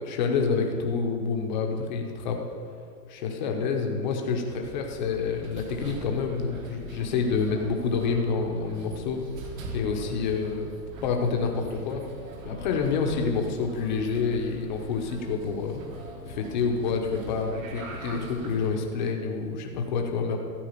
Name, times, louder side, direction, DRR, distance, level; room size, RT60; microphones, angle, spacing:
voice 1, 0.1-2.4 3.1-9.2 9.7-10.7 11.0-12.0 12.4-15.8 16.2-20.4, left 5 dB, 30° left, 2 dB, 0.9 m, -28 dB
sound 1, 4.6-18.7, right 2 dB, 55° right, 1.5 m, -42 dB
13.0 x 4.6 x 7.3 m, 2.4 s
supercardioid pair, 175°, 49 cm